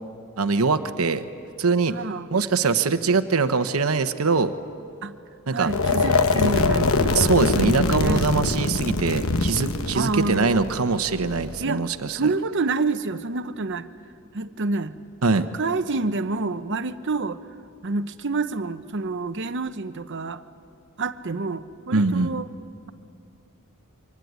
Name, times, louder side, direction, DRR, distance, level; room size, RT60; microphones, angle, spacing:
voice 1, 0.4-1.2 1.6-1.9 2.3-4.5 5.5-5.7 7.1-12.2 15.2-15.5 21.9-22.3, right 4 dB, 85° right, 10 dB, 1.0 m, -22 dB
voice 2, 1.9-2.3 5.0-5.2 5.5-8.3 9.9-10.9 11.6-13.9 14.3-14.9 15.3-17.4 17.8-20.4 21.0-22.5, right 3 dB, 55° right, 11 dB, 0.8 m, -28 dB
sound 1, 5.7-11.6, left 3 dB, 70° left, 1.0 m, -23 dB
25.5 x 24.5 x 9.5 m, 2.6 s
head